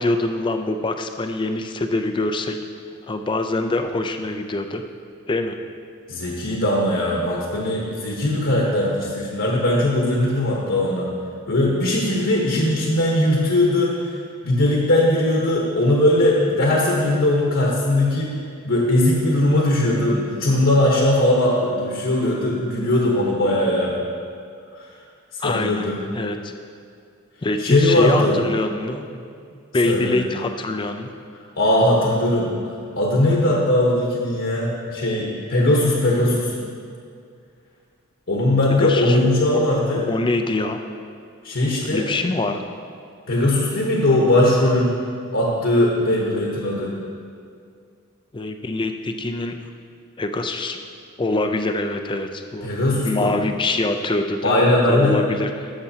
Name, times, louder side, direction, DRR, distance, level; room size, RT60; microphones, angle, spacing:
voice 1, 0.0-2.6 3.1-4.8 5.3-5.5 25.4-25.9 26.1-26.5 27.4-29.2 29.5-31.1 38.8-39.6 40.1-40.8 41.8-42.6 48.3-49.5 50.2-50.8 51.2-52.7 53.0-54.6 54.9-55.7, left 2 dB, 20° left, 7 dB, 0.4 m, -24 dB
voice 2, 6.1-11.1 11.5-14.1 14.4-18.3 18.6-23.9 24.7-24.9 25.3-26.0 27.6-28.4 29.8-30.2 31.6-32.5 33.0-36.5 38.3-40.0 41.4-42.1 43.3-44.9 45.3-46.9 52.6-53.3 54.4-55.1, left 1 dB, 60° left, -3 dB, 1.0 m, -19 dB
13.0 x 6.7 x 2.8 m, 2.3 s
head